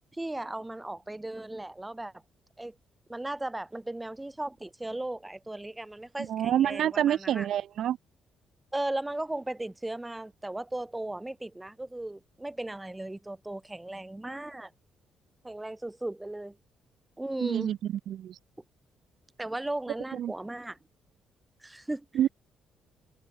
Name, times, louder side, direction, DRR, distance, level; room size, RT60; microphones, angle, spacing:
voice 1, 0.1-2.1 2.6-2.7 3.1-7.5 8.7-14.7 15.4-16.6 17.2-17.7 19.4-20.8 21.6-22.1, right 1 dB, 10° right, 7.3 m, -36 dB
voice 2, 6.3-8.0 17.4-17.8 18.1-18.3 20.1-20.3 22.2-22.3, right 11 dB, 70° right, 2.6 m, -27 dB
cardioid pair, 90°, 0 cm